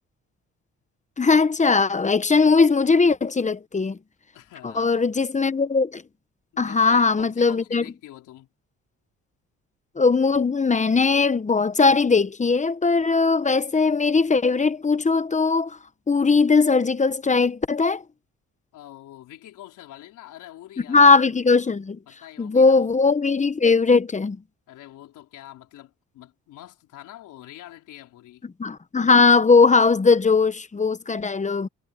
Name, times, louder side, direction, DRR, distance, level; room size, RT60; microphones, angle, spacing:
voice 1, 1.2-4.0 4.6-6.0 6.6-7.8 10.0-15.8 16.1-18.0 20.9-22.0 22.4-24.4 28.6-31.7, left 4 dB, 25° left, 1.1 m, -19 dB
voice 2, 4.3-5.1 6.5-8.5 18.7-21.1 22.1-22.8 24.7-28.5, left 14 dB, 85° left, 4.4 m, -45 dB
cardioid pair, 90°, 30 cm